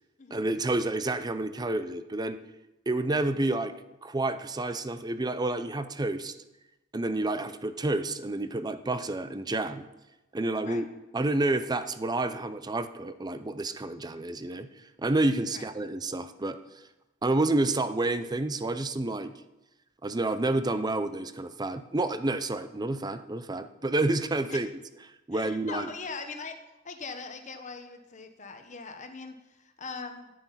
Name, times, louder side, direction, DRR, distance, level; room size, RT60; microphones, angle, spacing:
voice 1, 0.3-2.4 2.9-3.7 4.0-6.3 6.9-9.9 10.3-10.8 11.1-14.7 15.0-16.6 17.2-19.3 20.0-24.7 25.3-25.9, right 2 dB, 20° right, 11 dB, 0.6 m, -29 dB
voice 2, 25.3-26.5 26.8-30.3, left 4 dB, 40° left, 6 dB, 1.0 m, -41 dB
10.5 x 9.2 x 5.8 m, 0.99 s
head